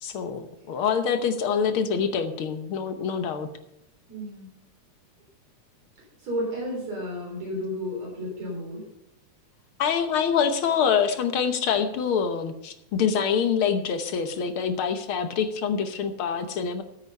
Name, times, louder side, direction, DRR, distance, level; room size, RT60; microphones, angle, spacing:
voice 1, 0.0-3.5 9.8-16.8, left 7 dB, 65° left, 8 dB, 1.4 m, -25 dB
voice 2, 4.1-4.5 6.2-8.9, equal, 65° right, -2 dB, 4.8 m, -32 dB
14.0 x 8.4 x 5.4 m, 0.85 s
omnidirectional pair, 3.3 m